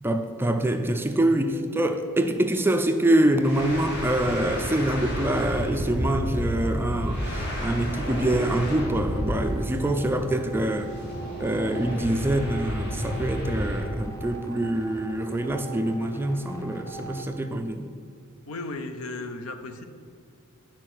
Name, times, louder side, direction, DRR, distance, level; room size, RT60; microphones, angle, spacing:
voice 1, 0.0-10.9 11.4-17.9, right 1 dB, 10° right, 7 dB, 0.4 m, -25 dB
sound 1, 1.1-17.3, right 3 dB, 15° left, 0.7 m, -44 dB
sound 2, 3.4-14.0, equal, 50° left, 2.0 m, -31 dB
sound 3, 4.5-4.6 5.0-5.4 5.8-6.2 6.6-7.0 7.4-7.8 8.2-8.6 9.0-9.4, equal, 90° left, 1.0 m, -36 dB
voice 2, 18.5-19.8, left 2 dB, 75° left, 7 dB, 0.7 m, -35 dB
9.8 x 4.4 x 6.0 m, 2.3 s
head